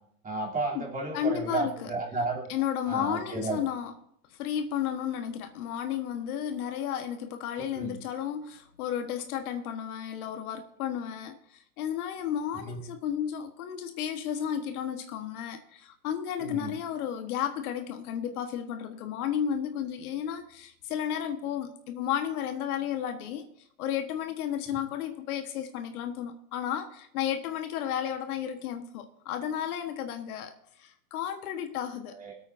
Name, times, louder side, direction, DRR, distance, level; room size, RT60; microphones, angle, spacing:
voice 1, 0.2-2.5 2.8-3.6 7.7-8.0 12.6-12.8 16.4-16.7 24.7-24.8 32.1-32.3, right 3 dB, 15° right, -2 dB, 3.1 m, -33 dB
voice 2, 1.1-1.9 2.5-3.9 4.4-23.5 23.8-30.5 30.8-32.2, left 9 dB, 65° left, 7 dB, 1.4 m, -33 dB
23.0 x 8.5 x 2.6 m, 0.70 s
hypercardioid pair, 115°, 47 cm